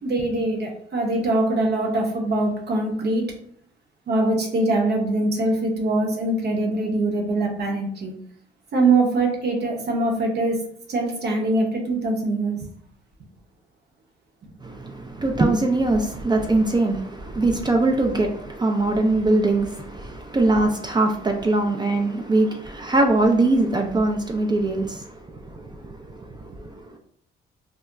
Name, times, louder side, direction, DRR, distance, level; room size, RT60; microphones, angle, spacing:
voice 1, 0.0-3.3 4.1-8.1 8.7-10.6 10.9-12.7, right 2 dB, 55° right, 0.8 m, -23 dB
voice 2, 14.6-27.0, right 2 dB, 20° right, 0.4 m, -22 dB
2.3 x 2.1 x 3.8 m
cardioid pair, 90°, 20 cm